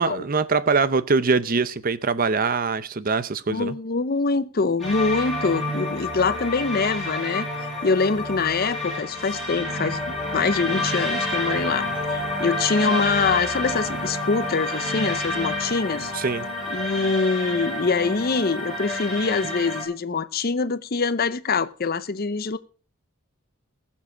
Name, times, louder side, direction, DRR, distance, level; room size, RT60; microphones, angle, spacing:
voice 1, 0.0-3.8 16.1-16.5 19.4-19.5, right 4 dB, 40° right, 0.7 m, -23 dB
voice 2, 3.5-7.5 7.8-16.1 16.7-22.6, left 4 dB, 45° left, 0.7 m, -24 dB
sound 1, 4.8-19.8, left 1 dB, ahead, 8.0 m, -29 dB
19.5 x 7.4 x 5.0 m
head